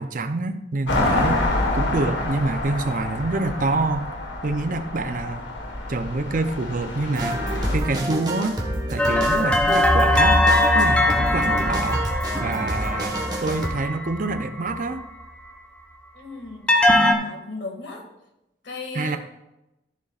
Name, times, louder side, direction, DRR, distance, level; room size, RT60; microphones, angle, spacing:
voice 1, 0.0-1.5 1.7-4.1 4.4-5.4 5.9-7.4 7.7-8.6 8.9-10.4 10.7-12.1 12.4-15.0 18.9-19.2, right 2 dB, 45° right, 9 dB, 0.6 m, -26 dB
sound 1, 0.9-7.8, left 2 dB, 90° left, 1.5 m, -27 dB
sound 2, 7.1-13.7, right 1 dB, 25° right, 1.4 m, -29 dB
sound 3, 9.0-15.2 16.7-17.1, left 1 dB, 5° left, 0.7 m, -20 dB
voice 2, 16.1-18.0 18.6-19.2, left 3 dB, 70° left, 1 dB, 2.0 m, -36 dB
13.5 x 7.0 x 2.4 m, 0.91 s
head